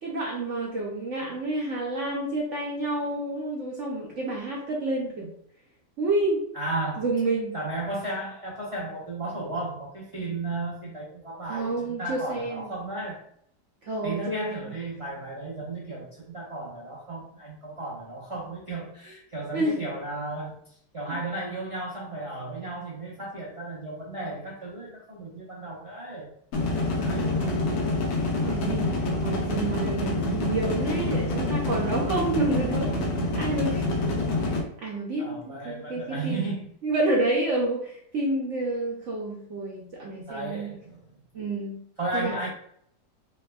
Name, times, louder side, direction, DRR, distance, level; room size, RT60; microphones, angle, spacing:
voice 1, 0.0-5.3 6.0-6.4 7.0-7.5 11.5-12.7 13.8-14.7 19.5-19.8 27.3-27.6 28.4-28.9 29.2-33.0 33.4-33.9 34.8-36.5 36.8-40.7 41.3-41.8 42.1-42.5, right 2 dB, 65° right, -3 dB, 0.8 m, -29 dB
voice 2, 6.5-7.0 7.5-13.2 14.0-20.6 20.9-26.3 27.0-27.5 35.2-36.7 40.3-41.1 42.0-42.5, right 2 dB, 40° right, -6 dB, 0.4 m, -34 dB
sound 1, 26.5-34.6, left 2 dB, 75° left, 1.3 m, -27 dB
3.3 x 3.2 x 2.2 m, 0.66 s
omnidirectional pair, 1.8 m